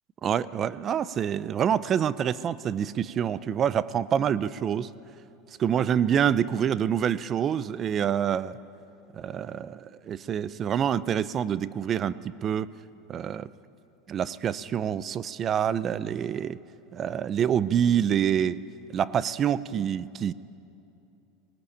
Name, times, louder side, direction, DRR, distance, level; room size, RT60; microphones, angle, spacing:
voice 1, 0.2-4.9 5.6-8.6 9.1-12.7 13.1-13.5 14.1-16.6 16.9-18.6 18.9-20.3, right 9 dB, 30° right, 18 dB, 0.5 m, -26 dB
19.0 x 18.5 x 8.6 m, 2.7 s
supercardioid pair, 135°, 0 cm